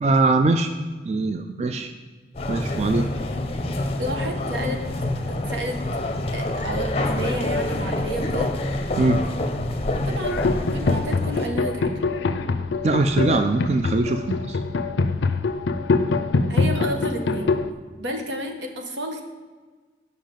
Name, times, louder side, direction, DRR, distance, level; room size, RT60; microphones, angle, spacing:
voice 1, 0.0-0.7 1.0-1.9 2.5-3.1 9.0-9.2 12.8-14.6, right 3 dB, 35° right, 6 dB, 0.3 m, -21 dB
sound 1, 2.3-11.5, left 1 dB, 35° left, 0.5 m, -27 dB
voice 2, 4.0-4.8 5.3-5.8 6.3-8.5 10.1-10.4 10.7-11.9 16.5-17.6 18.0-19.2, right 1 dB, 90° right, 3 dB, 1.0 m, -30 dB
sound 2, 10.2-17.7, left 3 dB, 80° left, 0.4 m, -24 dB
7.2 x 5.5 x 5.2 m, 1.4 s
head